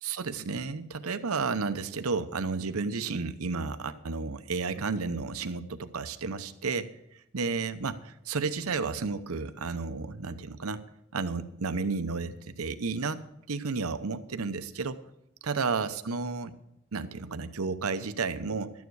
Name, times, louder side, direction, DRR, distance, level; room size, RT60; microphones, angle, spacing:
voice 1, 0.0-6.9 7.3-10.8 11.1-13.2 13.5-15.0 15.4-16.5 16.9-18.7, right 4 dB, 80° right, 11 dB, 0.8 m, -32 dB
12.5 x 9.3 x 4.7 m, 0.81 s
head